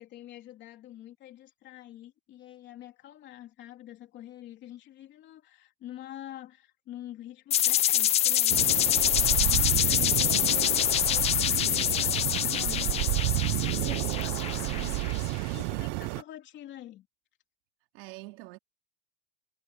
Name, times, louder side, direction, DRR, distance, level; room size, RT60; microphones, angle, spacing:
voice 1, 0.0-17.1, left 13 dB, 35° left, 3.3 m, -47 dB
sound 1, 7.5-15.3, left 11 dB, 20° left, 0.4 m, -26 dB
sound 2, 8.5-16.2, right 25 dB, 45° right, 0.5 m, -30 dB
voice 2, 9.2-9.7 17.9-18.6, right 21 dB, 70° right, 2.7 m, -46 dB
cardioid pair, 165°, 31 cm